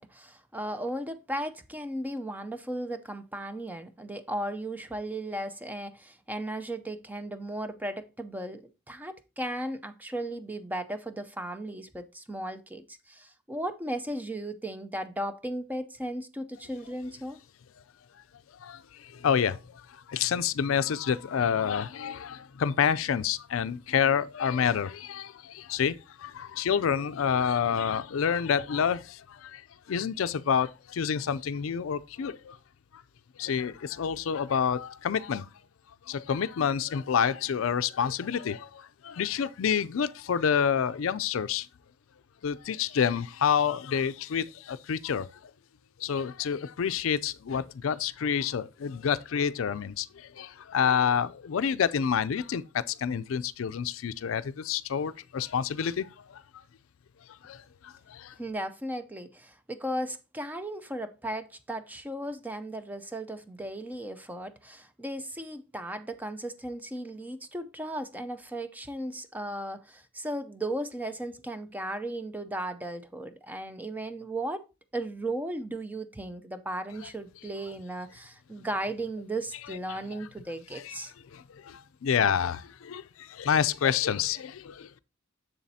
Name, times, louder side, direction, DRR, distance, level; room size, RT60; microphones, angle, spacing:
voice 1, 0.0-17.4 58.4-74.6 74.9-81.1, right 1 dB, 10° right, 0.5 m, -36 dB
voice 2, 18.6-29.6 29.9-32.6 32.9-33.0 33.4-35.5 36.1-41.7 42.4-45.5 46.0-56.4 57.4-58.3 79.7-80.0 80.7-81.0 81.3-85.0, left 7 dB, 75° left, 0.4 m, -28 dB
7.2 x 6.8 x 2.7 m
head